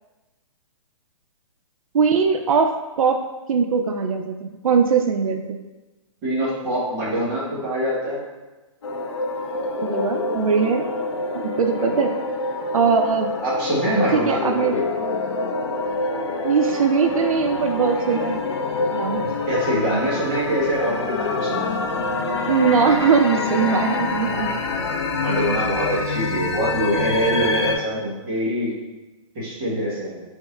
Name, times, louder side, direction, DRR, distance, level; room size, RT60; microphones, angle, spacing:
voice 1, 1.9-5.6 9.8-10.8 11.4-12.1 12.7-13.3 14.1-14.8 16.4-18.5 18.9-19.3 22.5-24.6, right 5 dB, 85° right, 5 dB, 0.5 m, -20 dB
voice 2, 6.2-8.2 11.7-12.1 13.4-14.8 19.2-21.9 24.8-24.9 25.2-28.7 29.3-30.2, right 1 dB, 15° right, -9 dB, 1.1 m, -24 dB
sound 1, 8.8-27.8, left 3 dB, 50° left, 0.5 m, -26 dB
4.4 x 3.6 x 3.1 m, 1.1 s
hypercardioid pair, 180°, 17 cm